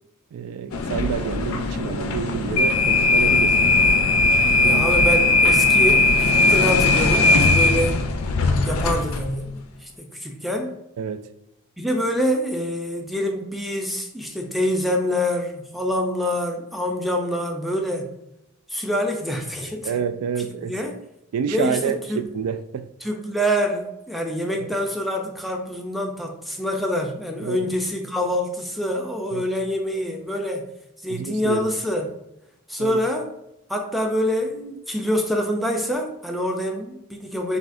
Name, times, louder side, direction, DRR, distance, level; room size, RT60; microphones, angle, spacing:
voice 1, 0.3-3.7 4.6-4.8 11.0-11.3 19.9-20.8 21.3-22.9 24.6-24.7 27.4-27.7 29.3-29.4 31.1-31.7 32.8-33.0, right 7 dB, 85° right, 10 dB, 0.3 m, -28 dB
sound 1, 0.7-9.3, left 3 dB, 70° left, 0.4 m, -19 dB
voice 2, 4.6-8.0 8.7-10.7 11.8-18.1 18.7-19.9 20.4-21.0 21.5-22.2 23.0-30.7 31.0-32.1 32.7-33.3 33.7-37.6, equal, ahead, 2 dB, 0.4 m, -26 dB
6.0 x 2.3 x 2.5 m, 0.87 s
head